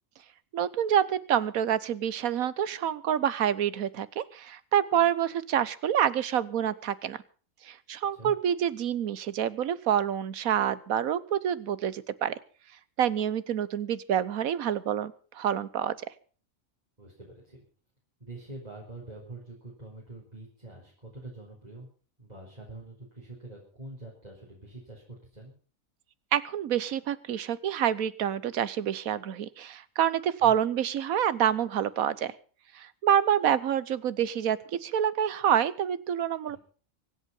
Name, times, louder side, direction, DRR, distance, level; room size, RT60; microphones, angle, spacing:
voice 1, 0.5-7.2 7.6-12.3 13.0-16.0 26.3-32.3 32.7-36.6, right 9 dB, 85° right, 17 dB, 1.3 m, -27 dB
voice 2, 17.0-17.6 18.2-21.9 22.2-25.5 30.4-30.5 36.5-36.6, right 2 dB, 30° right, -4 dB, 4.5 m, -45 dB
24.5 x 8.2 x 5.5 m, 0.40 s
omnidirectional pair, 1.4 m